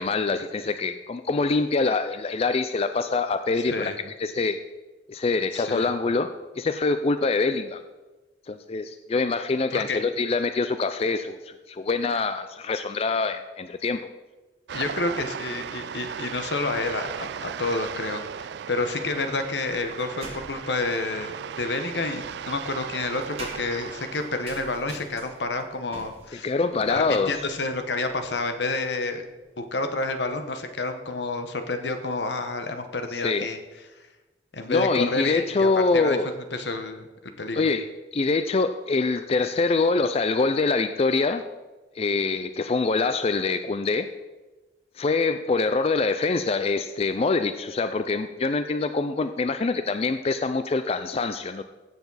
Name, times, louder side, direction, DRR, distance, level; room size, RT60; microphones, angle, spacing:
voice 1, 0.0-3.9 4.2-4.6 5.1-6.3 6.5-7.8 8.5-14.0 26.4-27.3 33.1-33.5 34.7-36.3 37.5-37.8 38.1-41.4 42.0-44.1 45.0-51.6, left 3 dB, 35° left, 10 dB, 0.4 m, -25 dB
voice 2, 3.6-4.0 5.5-5.9 9.7-10.0 14.7-26.5 26.9-29.3 29.6-33.6 34.5-35.7 35.9-36.2 36.5-37.0 37.4-37.6, left 3 dB, 80° left, 7 dB, 1.2 m, -29 dB
sound 1, 14.7-25.0, right 7 dB, 70° right, 0.3 m, -37 dB
sound 2, 19.6-20.8 21.9-30.6, right 2 dB, 35° right, 2.4 m, -47 dB
16.0 x 7.0 x 4.1 m, 1.2 s
head